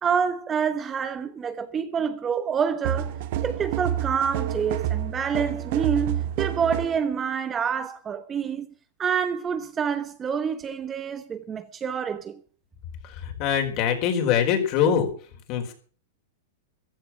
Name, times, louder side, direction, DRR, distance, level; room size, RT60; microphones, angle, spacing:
voice 1, 0.0-3.2 3.4-8.7 9.0-12.4, right 7 dB, 20° right, 1.0 m, -27 dB
sound 1, 2.8-7.0, right 11 dB, 55° right, 1.2 m, -28 dB
voice 2, 13.2-15.1 15.5-15.7, left 8 dB, 45° left, 4.5 m, -23 dB
15.0 x 12.0 x 6.1 m
hypercardioid pair, 135°, 0 cm